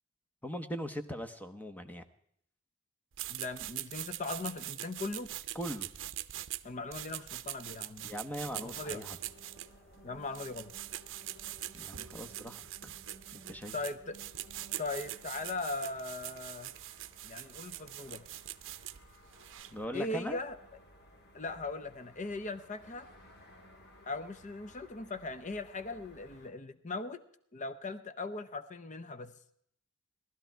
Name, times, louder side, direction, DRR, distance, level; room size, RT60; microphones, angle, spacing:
voice 1, 0.4-2.0 5.5-5.9 8.0-9.2 11.7-12.7 13.3-13.7 19.7-20.4, equal, 5° left, 9 dB, 0.9 m, -40 dB
sound 1, 3.1-19.8, right 14 dB, 60° right, 0.6 m, -43 dB
voice 2, 3.3-5.3 6.6-8.1 8.5-9.0 10.0-10.7 13.7-14.2 14.8-16.7 17.2-18.3 19.9-20.6 21.3-23.1 24.1-27.2 27.5-29.3, left 3 dB, 35° left, 13 dB, 0.7 m, -39 dB
sound 2, 8.4-26.5, equal, 50° left, 2.1 m, -58 dB
18.5 x 13.0 x 4.6 m, 0.68 s
head